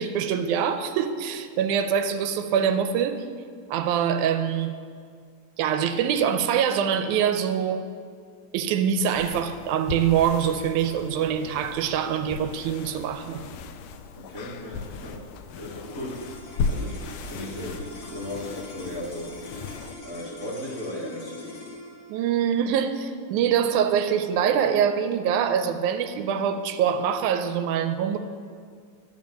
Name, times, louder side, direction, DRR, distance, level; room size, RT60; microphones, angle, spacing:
voice 1, 0.0-3.2 3.7-4.7 5.6-7.8 8.5-13.4 22.1-28.2, right 8 dB, 90° right, 9 dB, 2.0 m, -24 dB
sound 1, 9.1-19.9, left 4 dB, 75° left, 1.6 m, -36 dB
voice 2, 14.1-15.3 15.5-16.2 16.7-17.0 17.3-19.3 20.0-21.5, left 1 dB, 45° right, -4 dB, 1.0 m, -36 dB
sound 2, 15.8-26.3, left 2 dB, 50° left, 1.4 m, -43 dB
10.5 x 5.3 x 7.3 m, 2.1 s
omnidirectional pair, 3.4 m